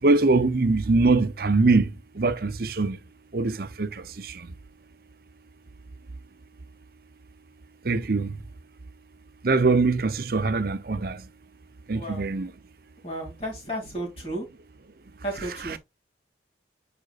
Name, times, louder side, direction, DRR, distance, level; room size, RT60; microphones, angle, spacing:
voice 1, 0.0-3.0 3.3-4.5 7.8-8.4 9.4-11.3 11.9-12.5 15.5-15.8, right 3 dB, 50° right, 0.6 m, -23 dB
voice 2, 11.9-12.3 13.0-14.5 15.2-15.8, right 1 dB, 30° left, 2.4 m, -33 dB
7.8 x 5.1 x 2.4 m
head